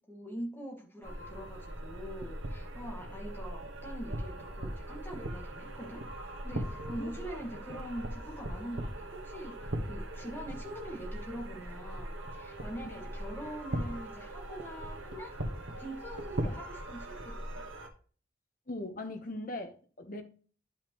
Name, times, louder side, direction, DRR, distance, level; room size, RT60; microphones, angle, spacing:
voice 1, 0.1-15.3 15.8-17.6, equal, 10° left, 2.0 m, -44 dB
sound 1, 1.0-17.9, right 1 dB, 90° right, 1.3 m, -40 dB
voice 2, 18.7-20.2, left 1 dB, 45° left, 1.0 m, -40 dB
10.5 x 5.7 x 3.1 m
head